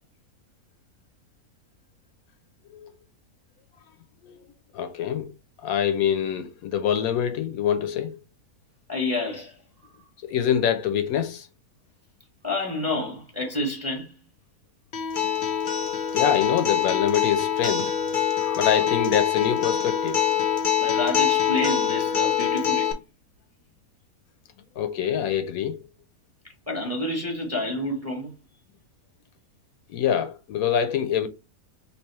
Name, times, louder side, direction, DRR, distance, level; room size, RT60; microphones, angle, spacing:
voice 1, 4.7-5.3 5.6-8.2 10.2-11.5 16.1-20.4 24.8-25.8 29.9-31.3, left 9 dB, 75° left, 1.0 m, -25 dB
voice 2, 8.9-9.6 12.4-14.1 20.8-22.9 26.7-28.3, left 2 dB, 10° right, 0.9 m, -29 dB
Acoustic guitar, 14.9-22.9, left 9 dB, 50° left, 0.6 m, -24 dB
3.3 x 2.8 x 4.2 m
omnidirectional pair, 1.6 m